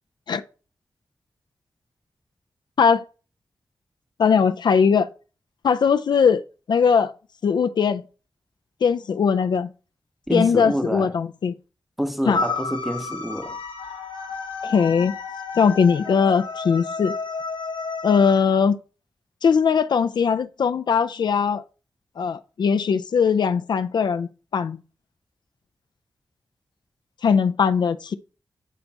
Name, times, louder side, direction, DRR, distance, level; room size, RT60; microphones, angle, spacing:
voice 1, 4.2-5.1 5.6-6.4 6.7-7.1 7.4-8.0 8.8-9.7 10.3-11.5 12.3-12.4 14.6-15.1 15.6-17.2 18.0-18.8 19.4-21.6 22.2-24.8 27.2-28.1, left 6 dB, 65° left, 0.3 m, -20 dB
voice 2, 10.3-11.1 12.0-13.6, equal, ahead, 0.6 m, -27 dB
sound 1, 12.3-18.4, left 3 dB, 85° left, 0.8 m, -31 dB
8.3 x 3.4 x 3.9 m
wide cardioid pair, 85°, 8 cm